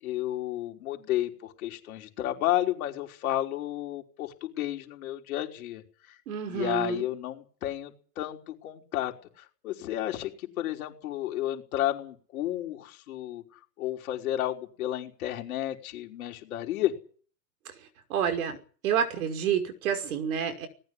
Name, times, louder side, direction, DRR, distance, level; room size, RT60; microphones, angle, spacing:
voice 1, 0.0-6.2 6.5-13.4 13.8-16.9, left 13 dB, 60° left, 5.4 m, -32 dB
voice 2, 6.3-7.1 18.1-18.6 18.8-20.7, right 8 dB, 60° right, 5.7 m, -28 dB
19.5 x 17.5 x 10.0 m
hypercardioid pair, 145°, 48 cm